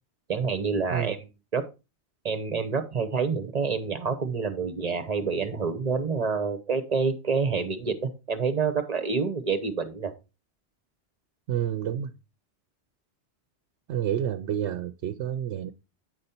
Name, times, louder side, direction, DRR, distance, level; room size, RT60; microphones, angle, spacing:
voice 1, 0.3-1.2 1.5-1.7 2.2-10.1, right 5 dB, 40° right, 0.9 m, -27 dB
voice 2, 11.5-12.1 13.9-15.7, right 10 dB, 80° right, 0.9 m, -29 dB
9.1 x 5.3 x 4.2 m
omnidirectional pair, 1.2 m